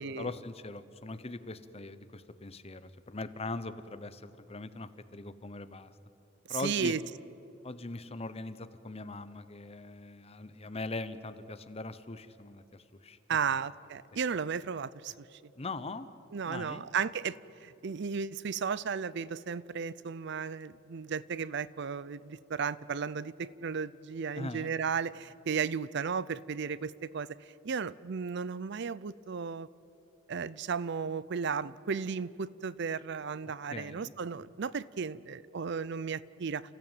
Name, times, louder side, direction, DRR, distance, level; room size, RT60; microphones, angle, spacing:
voice 1, 0.0-5.9 6.5-6.9 7.6-13.2 15.6-16.1 16.5-16.9 24.3-24.7 33.7-34.1, left 2 dB, 30° left, 12 dB, 1.0 m, -41 dB
voice 2, 6.5-7.0 13.3-15.4 16.3-27.4 27.6-29.7 30.3-36.6, right 6 dB, 60° right, 19 dB, 0.5 m, -34 dB
30.0 x 15.0 x 9.1 m, 2.8 s
head